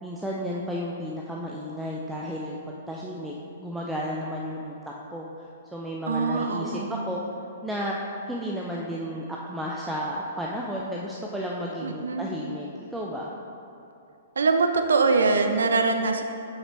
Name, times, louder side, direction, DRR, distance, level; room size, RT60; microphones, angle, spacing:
voice 1, 0.0-3.3 3.6-4.7 5.1-5.3 5.7-6.7 7.1-7.2 7.6-8.0 8.3-13.3, equal, 5° right, -4 dB, 0.4 m, -32 dB
voice 2, 6.1-7.2 11.8-12.3 14.4-16.2, right 4 dB, 65° right, 6 dB, 0.4 m, -23 dB
5.9 x 5.2 x 3.0 m, 2.7 s
figure-of-eight pair, 115°, 0 cm